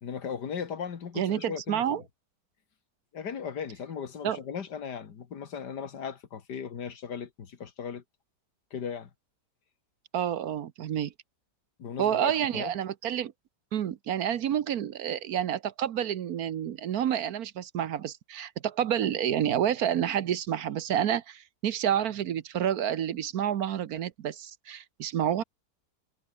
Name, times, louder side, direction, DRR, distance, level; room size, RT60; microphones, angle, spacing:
voice 1, 0.0-2.0 3.1-8.0 8.7-9.1 11.8-12.7, left 7 dB, 80° left, 2.3 m, -37 dB
voice 2, 1.2-2.0 4.2-4.4 10.1-11.1 12.0-13.3 13.7-25.4, right 10 dB, 65° right, 1.3 m, -29 dB
omnidirectional pair, 1.8 m